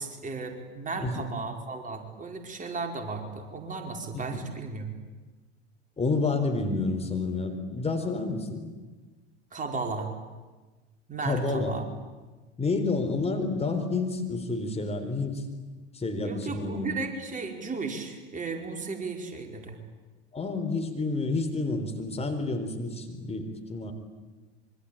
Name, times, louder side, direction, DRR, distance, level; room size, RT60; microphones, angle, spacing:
voice 1, 0.0-4.9 9.5-10.1 11.1-11.9 16.2-19.8, right 4 dB, 20° right, 3 dB, 4.8 m, -35 dB
voice 2, 6.0-8.6 11.2-11.8 12.6-15.4 15.9-17.0 20.3-23.9, left 3 dB, 20° left, 5 dB, 3.9 m, -29 dB
26.0 x 24.5 x 8.8 m, 1.3 s
figure-of-eight pair, 80°, 34 cm